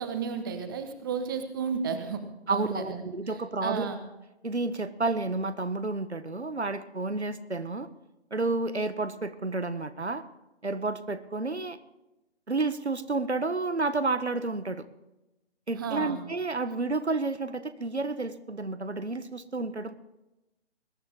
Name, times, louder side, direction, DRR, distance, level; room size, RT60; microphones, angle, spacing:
voice 1, 0.0-2.2 2.5-3.0 3.6-4.0 15.7-16.2, right 6 dB, 20° right, 8 dB, 1.1 m, -32 dB
voice 2, 2.5-3.9 4.4-7.9 8.3-10.2 10.6-11.8 12.5-14.9 15.7-19.9, right 3 dB, 80° right, 12 dB, 1.3 m, -30 dB
21.5 x 11.0 x 3.7 m, 0.95 s
figure-of-eight pair, 145°, 33 cm